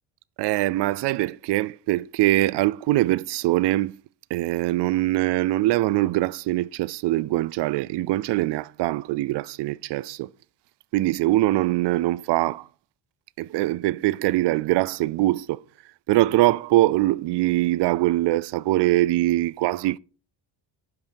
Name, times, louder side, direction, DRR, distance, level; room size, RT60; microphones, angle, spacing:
voice 1, 0.4-4.0 4.3-10.3 10.9-12.7 13.4-15.6 16.1-20.0, right 17 dB, 60° right, 0.5 m, -23 dB
12.0 x 5.9 x 4.5 m
cardioid pair, 145°, 47 cm